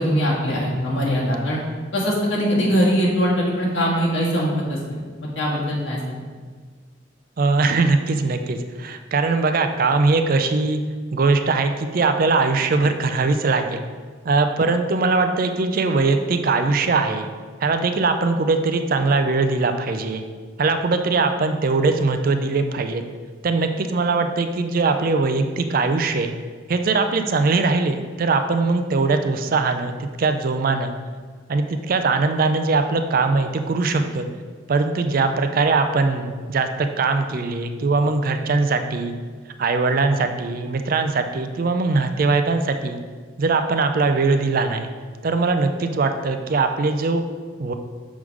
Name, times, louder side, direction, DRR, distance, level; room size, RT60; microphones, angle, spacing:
voice 1, 0.0-1.6 1.9-4.8 5.3-6.2, equal, 75° left, -5 dB, 1.7 m, -21 dB
voice 2, 7.4-10.8 11.1-13.8 14.2-17.3 17.6-20.2 20.6-23.0 23.4-26.3 26.7-31.0 31.5-34.3 34.7-39.1 39.6-43.0 43.4-44.9 45.2-47.2 47.6-47.7, right 3 dB, 45° right, 7 dB, 0.4 m, -21 dB
6.2 x 3.7 x 4.7 m, 1.5 s
head